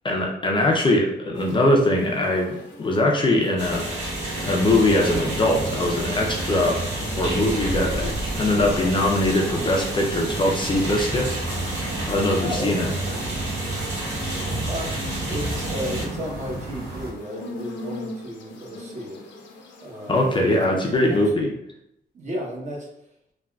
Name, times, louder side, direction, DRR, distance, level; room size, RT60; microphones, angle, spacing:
voice 1, 0.0-4.2 4.4-11.4 12.1-12.9 20.1-21.5, left 1 dB, 25° left, -1 dB, 0.4 m, -22 dB
sound 1, 1.3-21.3, left 2 dB, 85° left, 0.6 m, -43 dB
sound 2, 3.6-16.1, right 1 dB, 85° right, 1.4 m, -30 dB
sound 3, 4.7-17.1, right 2 dB, 65° right, 1.0 m, -33 dB
voice 2, 12.4-13.0 14.7-19.2 19.8-21.2 22.1-22.9, equal, 40° right, -2 dB, 0.8 m, -34 dB
3.5 x 2.3 x 2.2 m, 0.78 s
cardioid pair, 120°, 19 cm